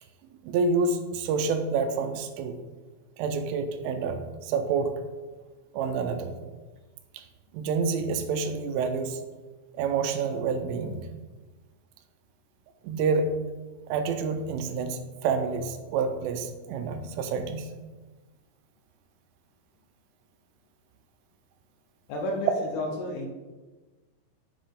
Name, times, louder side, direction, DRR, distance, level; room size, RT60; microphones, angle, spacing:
voice 1, 0.4-2.6 3.2-4.9 5.7-6.4 7.1-7.2 7.5-9.2 9.8-11.1 12.8-13.4 13.9-17.7, right 4 dB, 85° right, 7 dB, 3.0 m, -28 dB
voice 2, 22.1-23.3, left 1 dB, 90° left, 1 dB, 2.2 m, -31 dB
7.6 x 7.2 x 3.7 m, 1.3 s
omnidirectional pair, 5.9 m